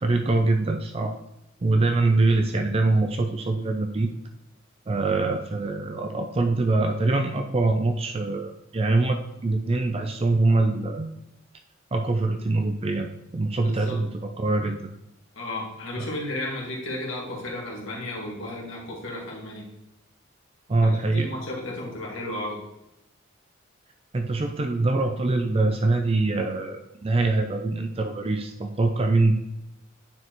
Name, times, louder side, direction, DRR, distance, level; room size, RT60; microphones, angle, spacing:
voice 1, 0.0-1.1 1.6-4.1 4.9-11.1 11.9-14.9 16.0-16.1 20.7-21.3 24.1-29.3, right 2 dB, 30° right, 5 dB, 0.4 m, -24 dB
voice 2, 13.6-14.0 15.4-19.7 20.8-22.6, left 1 dB, 80° left, -3 dB, 2.1 m, -34 dB
9.4 x 4.7 x 3.0 m, 0.87 s
head